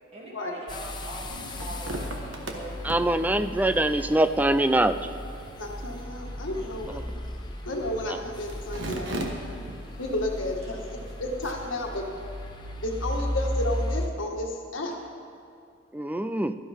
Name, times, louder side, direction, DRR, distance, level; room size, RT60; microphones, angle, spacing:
voice 1, 0.1-2.8 3.7-3.8 6.6-7.1 10.6-10.7, equal, 35° right, -5 dB, 2.5 m, -42 dB
sound 1, 0.7-14.1, left 1 dB, 25° left, 1.0 m, -36 dB
sound 2, 0.9-12.0, right 1 dB, 70° right, 1.4 m, -41 dB
voice 2, 2.8-5.1 15.9-16.6, right 1 dB, 10° right, 10 dB, 0.4 m, -23 dB
voice 3, 5.6-7.0 7.6-9.1 10.0-12.1 12.8-15.0, left 1 dB, 80° left, 1 dB, 1.6 m, -32 dB
17.0 x 12.5 x 3.5 m, 2.5 s
head